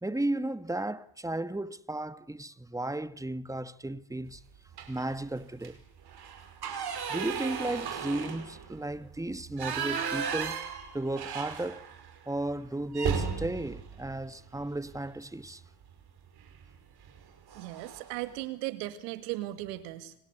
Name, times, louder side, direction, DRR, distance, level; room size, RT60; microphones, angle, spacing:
voice 1, 0.0-4.4 4.9-5.8 7.1-10.6 10.9-11.8 12.3-15.6, right 2 dB, 5° right, 1.5 m, -34 dB
sound 1, 4.7-5.2 5.5-5.7 6.1-12.1 12.4-12.5 12.9-15.1 16.4-16.7 17.0-17.2 17.5-18.1, right 6 dB, 50° right, 5.4 m, -35 dB
voice 2, 17.5-20.1, right 16 dB, 75° right, 2.2 m, -37 dB
28.5 x 25.5 x 8.2 m
hypercardioid pair, 50°, 48 cm